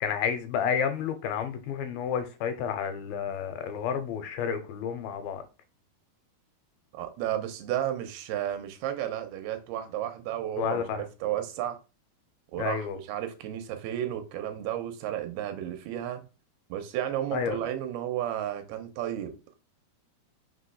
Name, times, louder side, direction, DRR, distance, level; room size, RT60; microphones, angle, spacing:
voice 1, 0.0-5.4 10.6-11.0 12.6-13.0 17.3-17.6, left 7 dB, 80° left, 2.5 m, -30 dB
voice 2, 6.9-11.8 12.5-16.2 16.7-19.3, right 11 dB, 85° right, 2.7 m, -33 dB
5.9 x 3.1 x 5.6 m
omnidirectional pair, 4.4 m